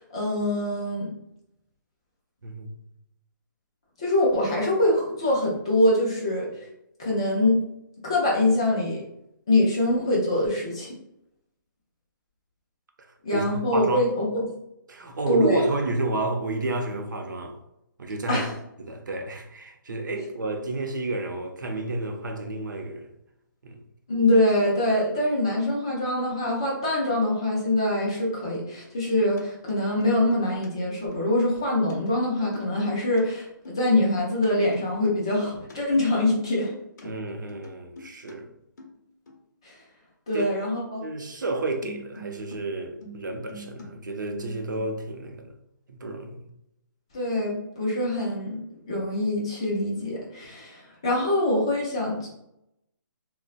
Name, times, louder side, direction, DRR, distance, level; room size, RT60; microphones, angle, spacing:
voice 1, 0.1-1.1 4.0-6.5 7.0-7.6 8.0-9.0 9.5-10.9 13.2-14.4 15.3-15.6 18.3-18.5 24.1-36.7 39.6-39.8 40.3-41.0 47.1-48.6 48.9-52.3, left 1 dB, 15° left, 0.4 m, -24 dB
voice 2, 2.4-2.8 13.3-13.5 13.7-14.1 14.9-17.6 18.0-18.4 18.8-23.1 23.6-23.8 37.0-38.5 40.3-40.5 41.0-45.5 45.9-46.5, right 2 dB, 60° right, 0.6 m, -30 dB
sound 1, 28.9-29.4 29.7-30.7 31.0-31.3 31.6-31.9 32.4-33.2 33.5-34.5 34.7-35.7 36.0-36.4 36.6-37.0 37.5-38.3 38.8-39.0 39.3-39.4 41.8-42.6 42.8-43.9 44.1-45.0, equal, 50° left, 0.8 m, -45 dB
3.8 x 2.1 x 2.4 m
hypercardioid pair, 180°, 11 cm